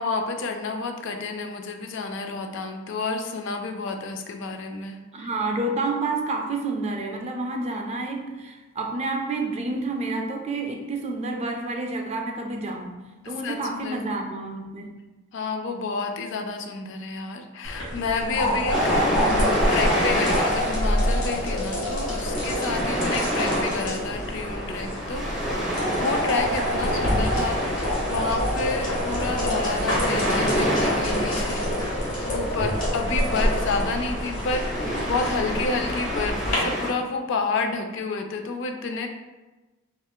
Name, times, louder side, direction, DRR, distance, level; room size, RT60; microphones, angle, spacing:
voice 1, 0.0-5.3 13.2-14.1 15.3-18.8 19.1-39.1, left 4 dB, 60° left, 5 dB, 0.3 m, -30 dB
voice 2, 5.1-13.0 13.3-14.9 18.4-18.8 22.7-23.2, right 2 dB, 30° right, 3 dB, 0.3 m, -29 dB
sound 1, 17.6-36.5, equal, 85° left, 1.1 m, -27 dB
sound 2, 18.7-36.9, equal, ahead, 0.7 m, -28 dB
3.6 x 2.4 x 2.2 m, 1.2 s
head